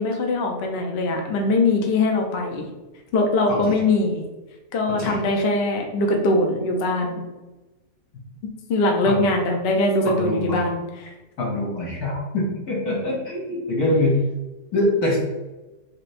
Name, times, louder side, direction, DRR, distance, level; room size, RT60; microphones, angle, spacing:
voice 1, 0.0-2.7 3.1-4.2 4.7-7.2 8.7-11.1, left 2 dB, 55° left, 2 dB, 0.7 m, -22 dB
voice 2, 3.5-3.8 4.9-5.2 9.1-9.2 10.0-10.6 11.4-14.2 14.7-15.2, left 1 dB, 75° left, -3 dB, 1.4 m, -24 dB
4.1 x 3.2 x 2.5 m, 1.1 s
omnidirectional pair, 1.7 m